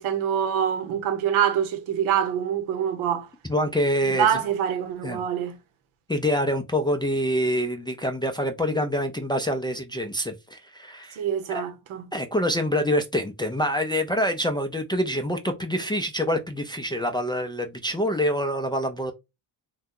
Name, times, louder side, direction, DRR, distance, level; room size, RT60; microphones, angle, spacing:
voice 1, 0.0-3.3 4.1-5.5 11.2-12.0, right 9 dB, 80° right, 0.8 m, -25 dB
voice 2, 3.5-4.4 5.0-5.2 6.1-11.2 11.5-11.6 12.1-19.1, equal, 10° left, 0.3 m, -26 dB
2.7 x 2.2 x 3.6 m
cardioid pair, 80°, 49 cm